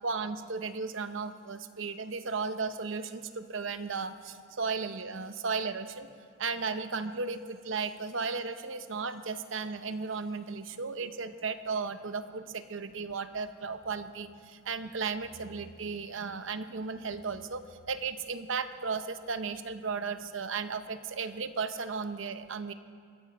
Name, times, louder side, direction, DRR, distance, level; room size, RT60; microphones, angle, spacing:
voice 1, 0.0-6.1 6.4-22.7, right 4 dB, 75° right, 10 dB, 0.8 m, -35 dB
22.0 x 13.5 x 4.3 m, 2.3 s
head